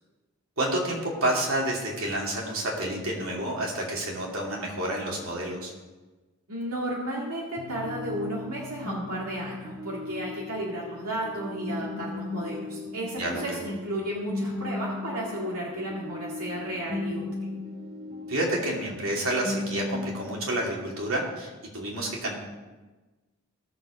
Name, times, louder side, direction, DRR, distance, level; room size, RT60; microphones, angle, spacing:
voice 1, 0.6-5.7 13.2-13.6 18.3-22.4, right 1 dB, 70° right, -2 dB, 2.8 m, -29 dB
voice 2, 6.5-17.3, right 1 dB, 85° right, -4 dB, 2.2 m, -33 dB
sound 1, 7.6-20.4, left 2 dB, 45° right, 2.8 m, -37 dB
17.0 x 7.0 x 5.1 m, 1.2 s
head